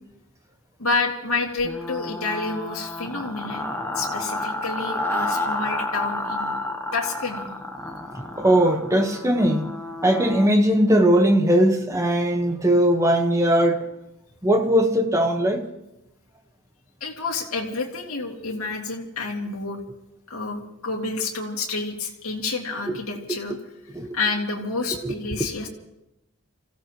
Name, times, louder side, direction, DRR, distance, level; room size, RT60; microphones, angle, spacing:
voice 1, 0.8-3.6 3.9-6.6 6.9-7.5 17.0-19.8 20.3-23.6 24.1-25.7, left 3 dB, 80° left, 2.3 m, -29 dB
sound 1, 1.6-10.5, left 2 dB, 10° left, 1.0 m, -30 dB
voice 2, 8.3-9.7 10.0-13.9 14.4-15.7 23.3-23.4 23.9-24.1 25.0-25.1, right 1 dB, 15° right, 1.2 m, -19 dB
29.0 x 16.0 x 3.0 m
head